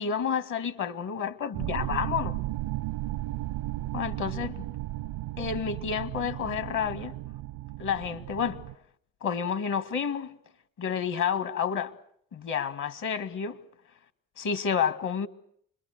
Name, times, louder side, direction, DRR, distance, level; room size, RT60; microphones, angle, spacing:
voice 1, 0.0-2.4 3.9-4.7 5.4-7.1 7.8-8.6 9.2-10.3 10.8-11.9 12.3-13.6 14.4-15.3, left 7 dB, 60° left, 1.9 m, -30 dB
sound 1, 1.5-8.7, right 16 dB, 85° right, 1.0 m, -35 dB
30.0 x 22.0 x 6.6 m
supercardioid pair, 65°, 34 cm